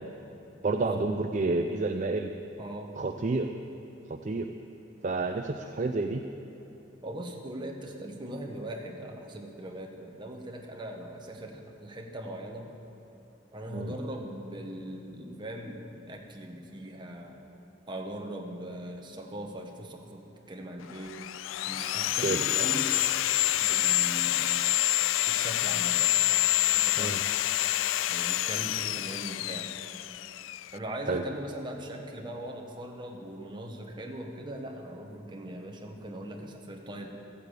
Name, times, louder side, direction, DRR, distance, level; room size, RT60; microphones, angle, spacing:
voice 1, 0.6-2.3 3.0-3.5 4.1-4.5 5.0-6.2 13.7-13.9 22.2-22.4 27.0-27.2 31.1-31.2, right 3 dB, 40° right, 5 dB, 0.5 m, -29 dB
voice 2, 2.6-2.9 7.0-12.7 13.5-17.4 17.9-21.2 21.7-22.9 23.6-24.5 25.3-26.1 26.7-27.3 28.1-29.7 30.7-37.1, right 1 dB, 25° right, 1 dB, 1.3 m, -40 dB
Sawing, 20.9-30.8, left 15 dB, 85° left, 0.3 m, -27 dB
14.0 x 8.5 x 8.3 m, 3.0 s
head